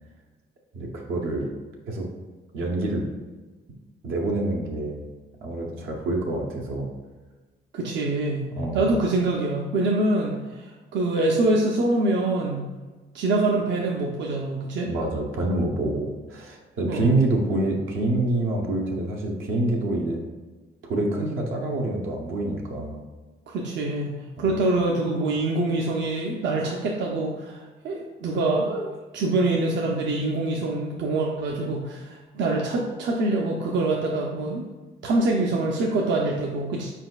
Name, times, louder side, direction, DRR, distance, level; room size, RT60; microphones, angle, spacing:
voice 1, 0.7-1.5 1.9-2.1 2.5-3.0 4.0-5.1 5.4-6.9 8.5-8.9 14.9-20.2 20.8-23.0 24.4-24.5, right 2 dB, 85° right, 0 dB, 0.9 m, -26 dB
voice 2, 7.7-8.5 8.7-12.7 13.1-14.9 16.9-17.1 23.5-34.6 35.0-36.9, right 2 dB, 65° right, -1 dB, 0.6 m, -25 dB
4.5 x 4.2 x 2.3 m, 1.3 s
cardioid pair, 90°, 20 cm